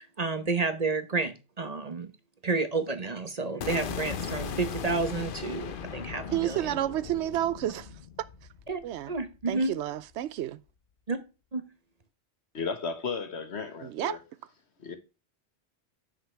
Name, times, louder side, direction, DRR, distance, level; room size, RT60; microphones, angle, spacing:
voice 1, 0.0-2.1 2.4-6.7 8.7-8.8 9.1-9.7 11.1-11.2 11.5-11.6, right 3 dB, 40° right, 1.1 m, -30 dB
sound 1, 3.6-9.6, left 7 dB, 55° left, 0.9 m, -38 dB
voice 2, 6.3-7.9 8.8-9.1 9.5-10.6 13.8-14.2, right 13 dB, 85° right, 0.9 m, -30 dB
voice 3, 12.5-14.2 14.8-15.0, left 5 dB, 75° left, 1.7 m, -34 dB
9.7 x 6.4 x 3.3 m
omnidirectional pair, 1.1 m